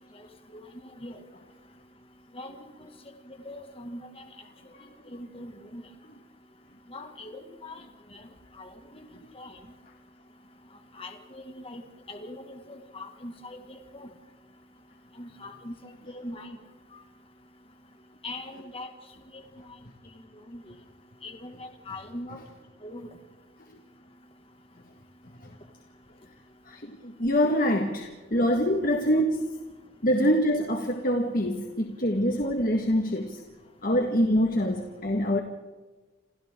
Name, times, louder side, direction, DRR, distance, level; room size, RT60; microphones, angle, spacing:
voice 1, 3.4-4.0 5.1-5.8 6.9-7.8 8.6-8.7 9.4-9.5 11.0-11.8 12.1-14.1 15.2-15.7 16.1-16.6 18.2-18.9 20.5-20.6 21.2-22.4 22.8-23.1, left 1 dB, 30° left, 5 dB, 2.1 m, -41 dB
voice 2, 26.7-29.5 30.0-33.4 33.8-35.4, equal, 45° left, 3 dB, 1.7 m, -25 dB
29.0 x 28.5 x 3.8 m, 1.3 s
head